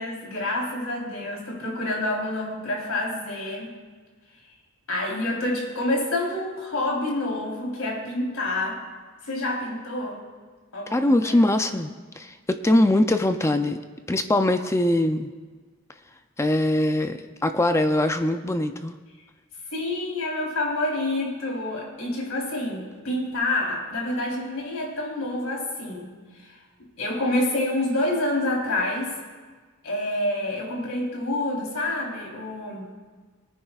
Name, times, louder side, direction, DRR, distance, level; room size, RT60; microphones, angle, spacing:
voice 1, 0.0-3.7 4.9-8.8 9.2-10.2 10.7-11.4 19.7-26.1 26.4-26.6 27.0-29.1 29.8-32.9, left 1 dB, 90° left, -2 dB, 3.6 m, -28 dB
voice 2, 10.9-11.9 12.2-13.8 14.1-15.3 16.4-18.9, left 1 dB, 15° left, 8 dB, 0.4 m, -22 dB
24.0 x 9.7 x 2.4 m, 1.4 s
head